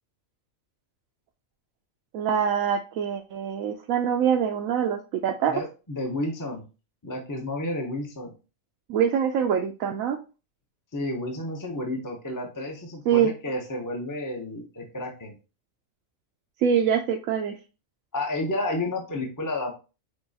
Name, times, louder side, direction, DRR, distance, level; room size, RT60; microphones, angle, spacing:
voice 1, 2.1-5.5 8.9-10.2 13.1-13.3 16.6-17.6, right 8 dB, 80° right, 2 dB, 1.0 m, -24 dB
voice 2, 5.5-6.7 7.0-8.3 10.9-15.3 18.1-19.7, left 1 dB, 20° left, 1 dB, 0.6 m, -31 dB
6.2 x 2.9 x 2.7 m, 0.31 s
omnidirectional pair, 1.4 m